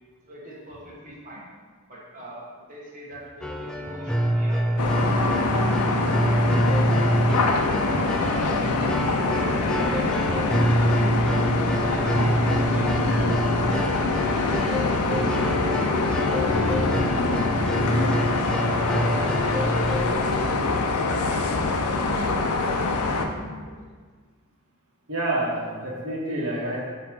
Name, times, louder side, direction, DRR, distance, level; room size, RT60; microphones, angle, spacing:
voice 1, 0.3-1.5 1.9-6.6 6.9-7.4 7.7-8.5 9.3-11.3 11.8-13.4 13.6-16.6 17.1-20.0 20.5-23.7, right 1 dB, 40° right, -6 dB, 1.4 m, -43 dB
sound 1, 3.4-20.2, right 1 dB, 5° left, 0.3 m, -26 dB
sound 2, 4.8-23.3, left 3 dB, 85° left, 0.6 m, -24 dB
voice 2, 25.1-26.9, right 1 dB, 85° right, -4 dB, 1.3 m, -28 dB
7.4 x 3.1 x 4.7 m, 1.5 s
head